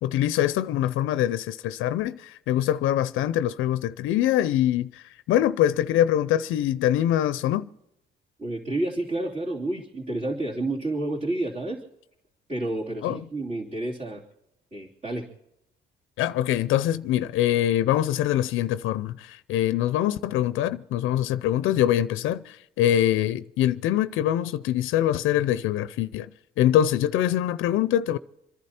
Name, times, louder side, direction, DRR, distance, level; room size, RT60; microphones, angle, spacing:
voice 1, 0.0-7.7 13.0-13.2 16.2-26.3 26.6-28.2, left 12 dB, 90° left, 0.5 m, -24 dB
voice 2, 8.4-11.8 12.5-14.2 14.7-15.3, right 2 dB, 35° right, 3.2 m, -30 dB
27.5 x 11.0 x 4.3 m
cardioid pair, 90°, 20 cm